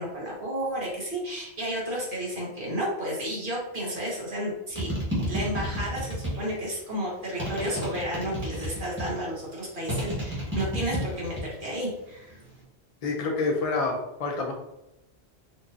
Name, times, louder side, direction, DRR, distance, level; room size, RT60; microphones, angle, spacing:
voice 1, 0.0-4.9 5.3-12.4, equal, 50° right, -4 dB, 1.4 m, -32 dB
sound 1, 4.8-6.6 7.4-9.2 9.9-11.6 11.9-12.4, equal, 10° right, 1.3 m, -31 dB
voice 2, 13.0-14.5, left 3 dB, 45° left, 1 dB, 0.5 m, -27 dB
4.5 x 2.6 x 2.6 m, 0.89 s
omnidirectional pair, 1.2 m